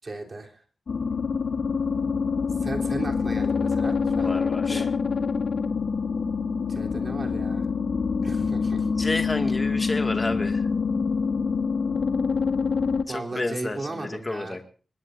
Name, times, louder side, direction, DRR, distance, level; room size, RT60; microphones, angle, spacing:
voice 1, 0.0-0.6 2.6-4.3 4.6-4.9 6.7-7.7 8.2-8.9 13.1-14.6, right 2 dB, 35° right, 2 dB, 3.5 m, -36 dB
sound 1, 0.9-13.0, left 5 dB, 60° left, 1.5 m, -26 dB
voice 2, 4.2-4.9 9.0-10.7 13.1-14.6, left 2 dB, 25° left, 5 dB, 2.2 m, -30 dB
25.5 x 20.0 x 2.7 m, 0.40 s
wide cardioid pair, 130°, 0 cm